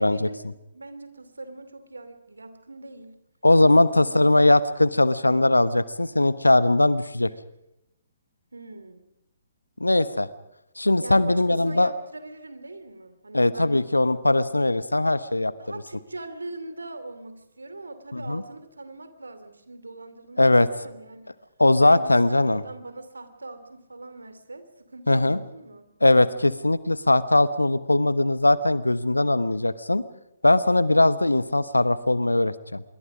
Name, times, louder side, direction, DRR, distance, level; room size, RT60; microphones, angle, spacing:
voice 1, 0.0-3.2 3.8-4.3 8.5-9.0 11.0-13.8 15.6-21.4 21.8-25.9, right 2 dB, 75° right, 11 dB, 2.8 m, -41 dB
voice 2, 3.4-7.3 9.8-10.3 10.8-11.9 13.3-15.5 18.3-18.4 20.4-20.7 21.6-22.6 25.1-25.4 26.0-30.0 30.4-32.8, left 2 dB, 85° left, 16 dB, 1.0 m, -20 dB
25.5 x 22.5 x 5.0 m, 0.85 s
figure-of-eight pair, 130°, 0 cm